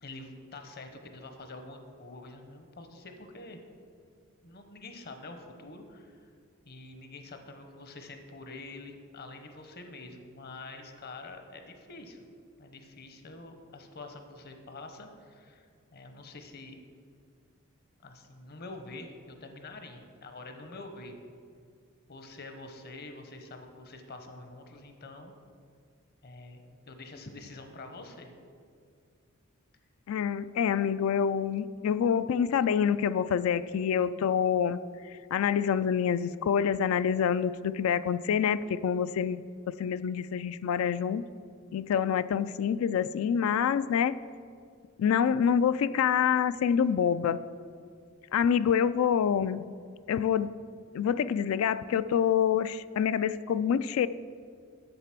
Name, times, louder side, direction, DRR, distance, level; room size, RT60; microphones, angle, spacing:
voice 1, 0.0-3.6 4.4-6.2 6.6-12.2 12.6-16.8 18.0-21.2 22.1-25.3 26.2-28.3, left 2 dB, 50° left, 6 dB, 0.9 m, -46 dB
voice 2, 30.1-34.8 35.0-41.2 41.7-44.2 45.0-47.4 48.3-49.6 50.1-50.5 50.9-54.1, left 8 dB, 80° left, 16 dB, 0.3 m, -27 dB
7.9 x 6.7 x 5.9 m, 2.2 s
head